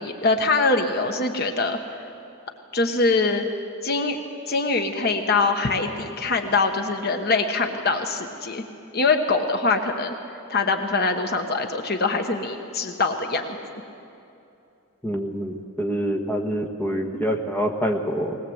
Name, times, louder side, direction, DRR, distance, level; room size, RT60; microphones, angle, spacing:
voice 1, 0.0-1.8 2.7-3.4 3.8-4.2 4.5-8.6 8.9-10.1 10.5-13.6, left 3 dB, 50° left, 5 dB, 1.2 m, -23 dB
voice 2, 15.0-18.4, equal, 10° left, 1 dB, 1.4 m, -26 dB
20.0 x 19.5 x 7.9 m, 2.7 s
head